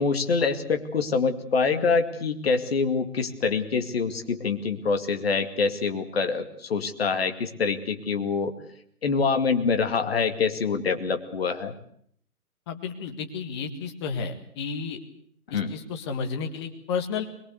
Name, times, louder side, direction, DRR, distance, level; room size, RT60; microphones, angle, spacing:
voice 1, 0.0-8.5 9.0-11.7 15.5-15.7, left 5 dB, 40° left, 7 dB, 2.4 m, -25 dB
voice 2, 12.7-15.0 15.5-17.2, left 5 dB, 20° left, 5 dB, 1.7 m, -32 dB
22.0 x 22.0 x 8.3 m, 0.65 s
figure-of-eight pair, 140°, 44 cm